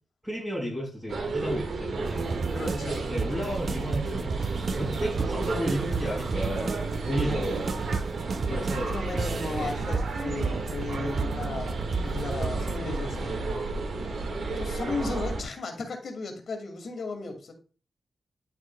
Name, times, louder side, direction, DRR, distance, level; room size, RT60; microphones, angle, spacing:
voice 1, 0.2-2.3 3.1-4.4 4.7-6.7 7.0-7.7 8.5-9.0, equal, 5° right, -6 dB, 4.6 m, -32 dB
sound 1, 1.1-15.4, right 3 dB, 75° right, 1.7 m, -33 dB
sound 2, 2.0-12.8, right 5 dB, 55° right, 0.5 m, -32 dB
voice 2, 2.5-3.1 7.2-7.6 8.5-13.7 14.0-14.3 14.6-17.5, left 3 dB, 70° left, 3 dB, 2.0 m, -36 dB
10.0 x 7.3 x 2.3 m, 0.36 s
wide cardioid pair, 100°, 0 cm